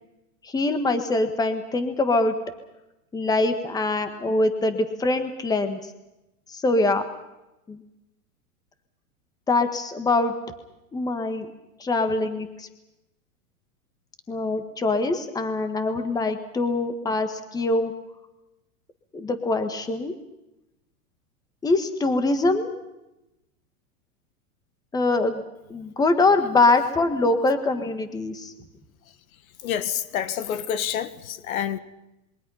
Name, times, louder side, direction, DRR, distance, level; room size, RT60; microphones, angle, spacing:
voice 1, 0.4-2.4 3.1-5.8 6.5-7.0 7.7-7.8 9.5-10.3 10.9-11.5 11.8-12.7 14.3-17.9 19.1-20.1 21.6-22.7 24.9-25.4 25.7-28.5, left 2 dB, 10° left, 9 dB, 1.5 m, -23 dB
voice 2, 29.6-31.8, left 9 dB, 70° left, 13 dB, 1.8 m, -28 dB
27.0 x 23.0 x 5.6 m, 0.93 s
supercardioid pair, 155°, 44 cm